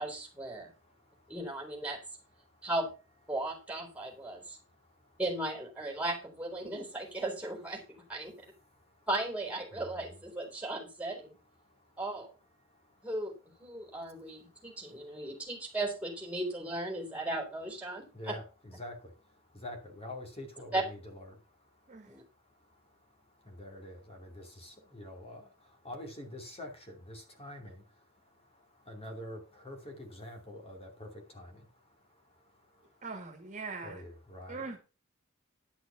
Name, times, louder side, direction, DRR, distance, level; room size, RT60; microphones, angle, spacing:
voice 1, 0.0-0.7 1.3-2.0 2.6-2.9 3.3-4.6 5.2-8.5 9.1-11.3 12.0-12.3 13.0-13.3 13.6-18.4 20.7-20.8 22.0-22.2, right 2 dB, 5° right, 3.7 m, -36 dB
voice 2, 0.6-1.3 2.4-2.7 4.0-5.2 8.2-9.1 9.7-10.0 11.6-12.0 12.6-13.1 13.8-15.3 18.1-33.1 33.8-34.8, left 1 dB, 30° left, 2.8 m, -48 dB
voice 3, 33.0-34.0 34.5-34.8, right 4 dB, 35° right, 2.0 m, -41 dB
11.0 x 6.1 x 5.8 m
head